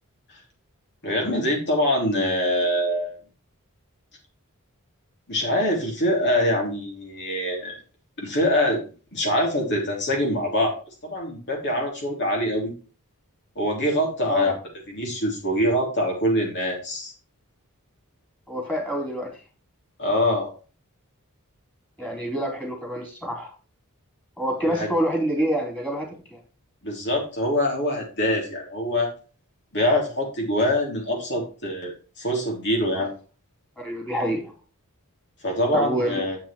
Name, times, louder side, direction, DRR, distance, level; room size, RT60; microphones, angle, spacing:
voice 1, 1.0-3.2 5.3-7.8 8.2-8.8 9.1-10.7 11.0-12.7 13.5-14.5 14.9-17.1 20.0-20.5 24.6-24.9 26.8-29.1 29.7-33.1 35.4-36.4, left 1 dB, 55° left, -1 dB, 3.4 m, -24 dB
voice 2, 14.2-14.6 18.5-19.3 22.0-23.5 24.4-26.4 33.8-34.5 35.7-36.2, equal, 5° left, 0 dB, 3.8 m, -27 dB
8.0 x 6.0 x 4.5 m, 0.36 s
head